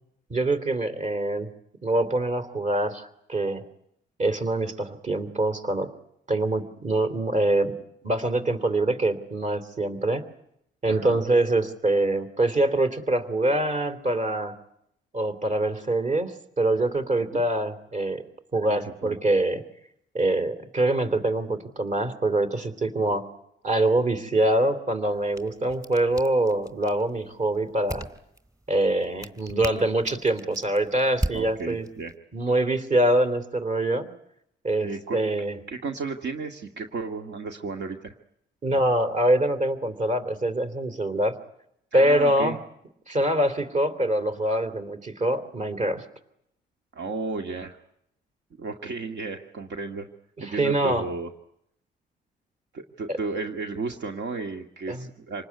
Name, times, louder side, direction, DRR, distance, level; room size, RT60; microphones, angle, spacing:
voice 1, 0.3-1.5 1.8-3.6 4.2-5.9 6.3-7.7 8.0-10.2 10.8-14.5 15.1-18.2 18.5-19.6 20.1-23.3 23.6-28.1 28.7-31.8 32.3-34.1 34.6-35.6 38.6-41.3 41.9-42.6 43.1-46.0 50.4-51.0 53.1-53.2 54.9-55.1, right 1 dB, 40° right, 8 dB, 3.2 m, -24 dB
voice 2, 10.9-11.2 17.3-17.4 18.7-19.2 31.3-32.1 34.8-35.2 35.7-38.2 41.9-42.6 46.9-47.8 48.6-50.1 50.4-51.3 52.7-55.4, right 4 dB, 60° right, 4 dB, 2.1 m, -33 dB
sound 1, 25.0-32.2, right 1 dB, 15° right, 3.0 m, -38 dB
27.0 x 19.5 x 9.6 m, 0.76 s
cardioid pair, 90°, 20 cm